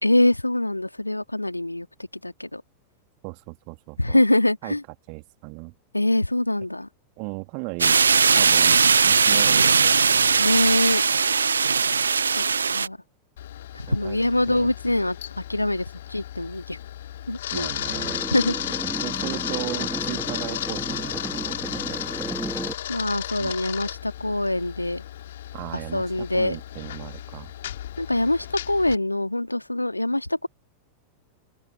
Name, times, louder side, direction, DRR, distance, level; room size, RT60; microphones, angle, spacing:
voice 1, 0.0-2.6 4.0-4.8 5.9-6.9 10.4-11.0 12.4-12.5 12.7-13.0 13.7-16.8 17.3-17.7 18.3-18.8 22.9-25.0 25.7-26.6 28.0-30.5, left 1 dB, 85° left, 2.4 m, -24 dB
voice 2, 3.2-4.2 4.6-4.7 5.1-5.7 7.2-8.0 8.3-10.7 13.9-14.2 14.5-14.7 17.5-18.3 19.0-22.0 23.4-23.6 25.5-27.5, right 40 dB or more, 45° right, 2.6 m, -37 dB
sound 1, 7.8-12.9, right 5 dB, 75° right, 0.6 m, -19 dB
Camera, 13.4-29.0, left 12 dB, 60° left, 3.4 m, -34 dB
sound 2, 17.7-22.7, right 2 dB, 5° right, 1.3 m, -34 dB
open air
figure-of-eight pair, 90°, 0 cm